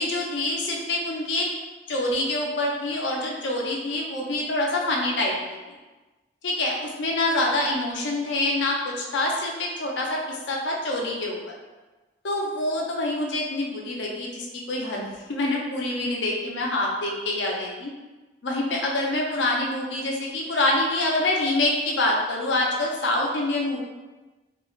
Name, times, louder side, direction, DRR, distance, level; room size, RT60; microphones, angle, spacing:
voice 1, 0.0-1.5 1.9-5.4 6.4-11.5 12.2-17.9 18.4-23.8, left 2 dB, 70° left, -1 dB, 0.5 m, -26 dB
2.4 x 2.3 x 3.1 m, 1.2 s
head